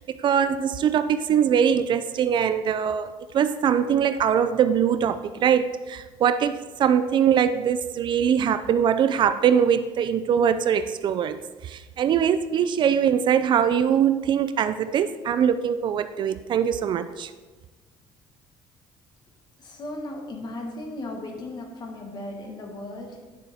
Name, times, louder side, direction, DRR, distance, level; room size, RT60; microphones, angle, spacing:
voice 1, 0.0-11.4 11.6-17.3, right 8 dB, 50° right, 11 dB, 0.4 m, -22 dB
voice 2, 19.6-23.3, left 1 dB, 40° left, 3 dB, 1.5 m, -36 dB
10.0 x 6.7 x 3.5 m, 1.2 s
cardioid pair, 125°, 11 cm